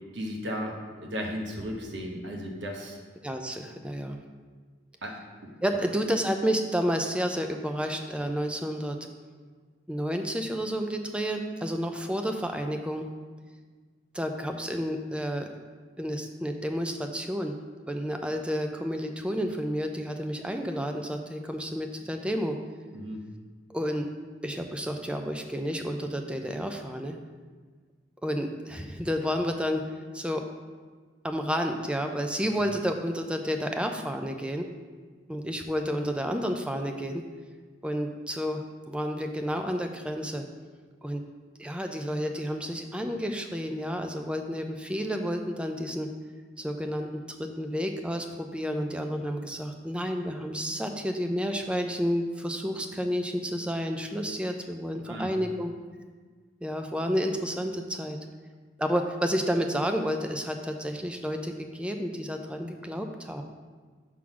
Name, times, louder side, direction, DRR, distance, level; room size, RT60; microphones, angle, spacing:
voice 1, 0.1-3.0 5.0-5.1 5.4-5.5 22.9-23.2 32.4-32.6 55.1-55.3, equal, 70° right, 0 dB, 1.0 m, -35 dB
voice 2, 3.2-4.2 5.6-9.0 9.9-13.1 14.1-15.6 16.0-17.6 17.9-22.6 23.7-24.1 24.4-27.2 28.2-29.8 30.1-30.4 31.2-34.7 35.3-37.2 37.8-40.5 41.0-41.2 41.6-46.1 46.6-55.7 56.6-58.2 58.8-63.4, equal, 5° right, 4 dB, 0.4 m, -30 dB
6.2 x 3.8 x 5.8 m, 1.5 s
head